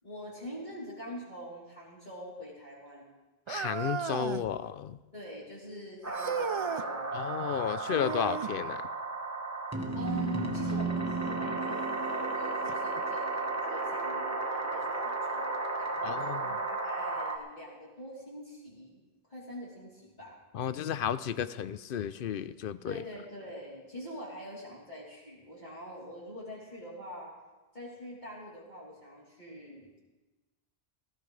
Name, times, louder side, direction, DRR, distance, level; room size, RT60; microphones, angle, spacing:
voice 1, 0.0-3.1 5.1-7.2 10.0-19.0 19.3-20.4 22.8-27.3 27.7-30.0, equal, 45° left, -7 dB, 3.6 m, -44 dB
voice 2, 3.5-5.0 7.1-8.8 16.0-16.4 20.5-23.0, left 9 dB, 65° left, 14 dB, 0.7 m, -33 dB
sound 1, 3.5-4.5 6.1-6.9 7.9-8.6 10.7-10.8 11.6-11.7 12.7-12.8, right 6 dB, 50° right, 0.3 m, -35 dB
sound 2, 6.0-17.4, right 3 dB, 15° right, 1.3 m, -33 dB
19.0 x 14.5 x 3.3 m, 1.2 s
omnidirectional pair, 1.1 m